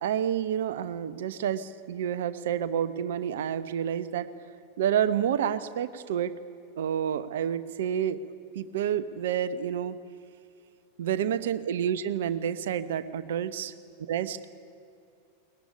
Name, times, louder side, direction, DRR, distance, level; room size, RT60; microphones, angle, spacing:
voice 1, 0.0-4.3 4.8-6.3 6.8-8.2 8.5-10.0 11.0-13.7 14.1-14.4, right 9 dB, 60° right, 14 dB, 1.0 m, -29 dB
22.0 x 19.5 x 9.9 m, 2.4 s
figure-of-eight pair, 90°, 0 cm